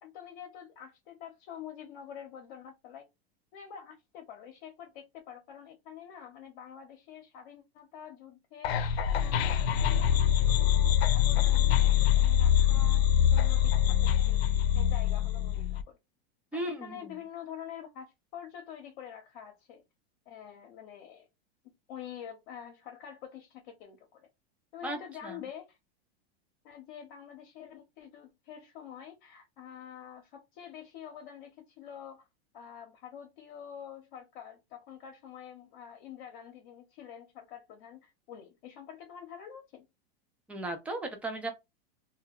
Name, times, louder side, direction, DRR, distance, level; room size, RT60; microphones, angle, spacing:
voice 1, 0.0-3.0 3.5-11.9 12.1-14.4 14.7-16.0 16.5-18.1 18.3-19.8 20.3-21.3 21.9-24.3 24.7-25.8 26.6-32.3 32.5-39.9, left 8 dB, 55° left, 0.8 m, -47 dB
sound 1, 8.6-15.8, left 10 dB, 85° left, 0.5 m, -24 dB
voice 2, 16.5-17.1 24.8-25.4 40.5-41.5, right 1 dB, 5° right, 0.3 m, -36 dB
2.2 x 2.1 x 3.5 m
supercardioid pair, 145°, 30 cm